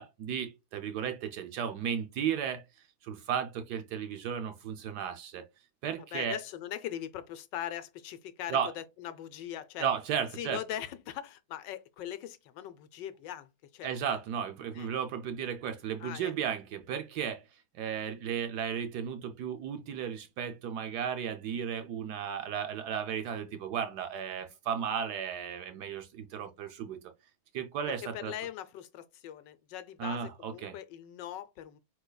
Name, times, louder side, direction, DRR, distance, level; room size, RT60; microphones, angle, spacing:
voice 1, 0.0-2.6 3.0-5.4 5.8-6.4 8.5-8.7 9.8-10.6 13.8-17.4 17.7-27.0 27.5-28.3 30.0-30.7, right 8 dB, 70° right, 1.0 m, -34 dB
voice 2, 6.0-9.9 10.4-13.9 14.7-14.9 16.0-16.3 27.9-31.8, left 11 dB, 75° left, 1.2 m, -41 dB
4.7 x 4.5 x 2.2 m
omnidirectional pair, 2.1 m